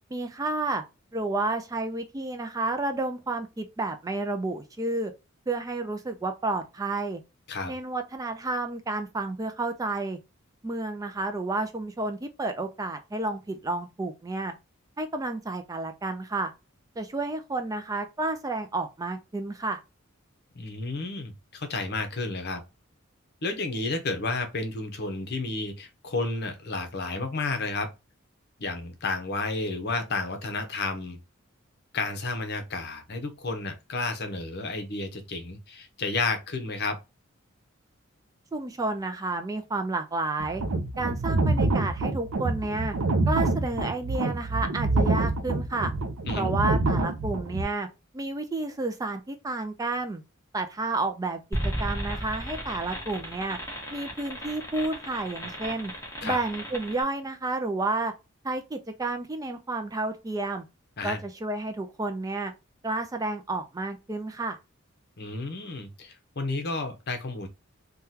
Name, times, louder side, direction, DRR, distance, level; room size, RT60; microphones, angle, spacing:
voice 1, 0.1-0.8 1.1-5.1 5.5-7.2 7.7-10.2 10.6-14.5 15.0-16.5 17.0-19.8 38.5-40.6 41.0-42.9 43.3-45.9 46.3-47.9 48.1-50.2 50.5-53.6 53.9-55.9 56.2-58.1 58.4-60.6 61.0-62.5 62.8-64.6, right 2 dB, 15° right, 0.3 m, -31 dB
voice 2, 20.5-22.6 23.4-27.9 28.6-31.2 31.9-37.0 46.3-46.5 56.2-56.4 61.0-61.2 65.2-67.5, left 3 dB, 55° left, 0.7 m, -31 dB
sound 1, 40.4-47.6, right 2 dB, 90° right, 0.5 m, -26 dB
sound 2, 51.5-57.0, equal, 15° left, 1.1 m, -35 dB
3.6 x 2.3 x 2.7 m
head